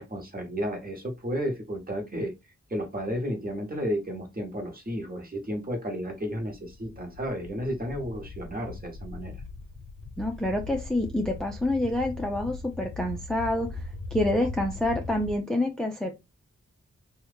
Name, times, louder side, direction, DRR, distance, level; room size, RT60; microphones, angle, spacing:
voice 1, 0.0-2.3 2.7-9.3, equal, 30° right, 1.2 m, -32 dB
sound 1, 6.5-15.4, left 3 dB, 45° left, 0.7 m, -40 dB
voice 2, 10.2-13.8 14.1-16.1, left 1 dB, ahead, 0.5 m, -27 dB
2.9 x 2.3 x 3.4 m
cardioid pair, 60°, 30 cm